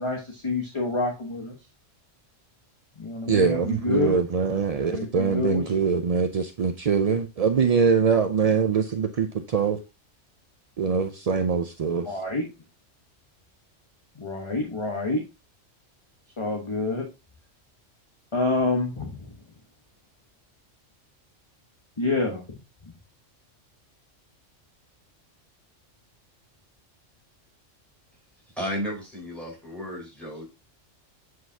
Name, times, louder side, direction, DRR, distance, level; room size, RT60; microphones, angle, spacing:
voice 1, 0.0-1.5 3.0-4.2 4.9-5.6 12.0-12.5 14.2-15.2 16.4-17.0 18.3-19.2 22.0-22.4, left 3 dB, 25° left, 1.1 m, -27 dB
voice 2, 3.3-9.8 10.8-12.2, right 6 dB, 60° right, 0.4 m, -23 dB
voice 3, 28.6-30.4, equal, ahead, 4.4 m, -33 dB
7.9 x 4.7 x 2.7 m
omnidirectional pair, 1.3 m